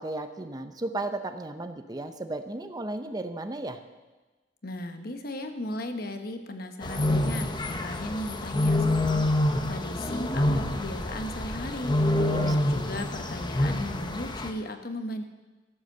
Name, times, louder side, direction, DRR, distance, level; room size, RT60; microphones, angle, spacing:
voice 1, 0.0-3.8 12.1-12.5, right 2 dB, 20° right, 8 dB, 0.6 m, -34 dB
voice 2, 4.6-15.2, left 1 dB, 55° left, 6 dB, 1.1 m, -36 dB
sound 1, 6.8-14.5, left 1 dB, 25° left, 0.8 m, -27 dB
13.5 x 8.0 x 6.6 m, 1.2 s
head